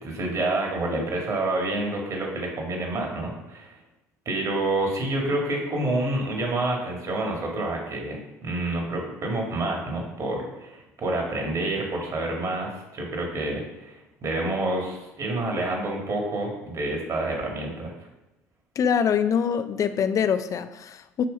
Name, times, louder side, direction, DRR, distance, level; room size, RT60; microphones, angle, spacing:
voice 1, 0.0-3.7 4.3-13.9 14.2-17.9, right 2 dB, 45° right, 0 dB, 2.2 m, -28 dB
voice 2, 18.8-21.2, left 7 dB, 45° left, 11 dB, 0.5 m, -24 dB
7.6 x 3.4 x 5.2 m, 0.96 s
hypercardioid pair, 60°, 8 cm